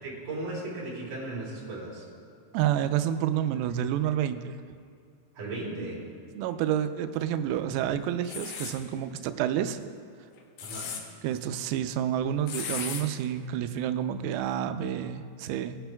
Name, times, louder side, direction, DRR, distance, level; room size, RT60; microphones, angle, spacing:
voice 1, 0.0-2.0 5.3-6.0 10.6-10.9, right 2 dB, 45° right, -6 dB, 4.5 m, -36 dB
voice 2, 2.5-4.6 6.4-9.9 11.2-15.8, right 10 dB, 90° right, 9 dB, 3.3 m, -29 dB
sound 1, 8.2-8.8 10.4-11.0 12.5-13.0, left 6 dB, 85° left, 2.2 m, -35 dB
21.5 x 10.5 x 2.3 m, 2.3 s
omnidirectional pair, 5.9 m